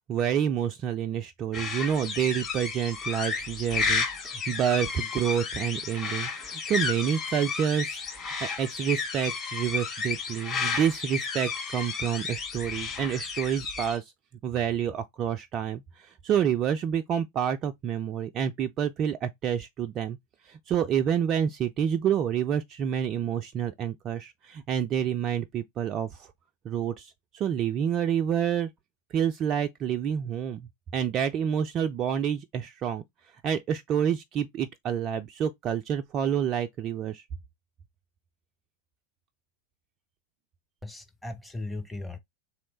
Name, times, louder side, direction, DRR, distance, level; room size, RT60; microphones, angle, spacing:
voice 1, 0.1-14.1 14.4-20.2 20.4-26.3 26.6-28.7 29.1-33.0 33.4-37.2, right 8 dB, 30° right, 0.3 m, -28 dB
sound 1, 1.5-14.0, left 5 dB, 25° left, 1.6 m, -32 dB
voice 2, 40.8-42.2, left 2 dB, 5° left, 0.7 m, -37 dB
3.1 x 3.0 x 3.1 m
figure-of-eight pair, 90°, 0 cm